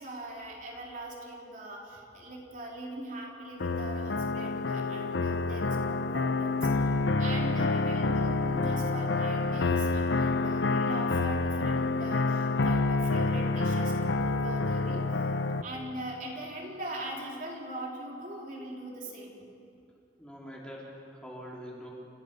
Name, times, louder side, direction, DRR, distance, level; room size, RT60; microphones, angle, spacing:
voice 1, 0.0-6.9 7.2-15.1 15.6-19.5, right 1 dB, 50° right, -2 dB, 3.5 m, -41 dB
sound 1, 3.6-15.6, left 3 dB, 85° left, 0.7 m, -28 dB
voice 2, 20.2-21.9, equal, 5° left, -4 dB, 3.7 m, -44 dB
30.0 x 15.0 x 6.8 m, 2.5 s
head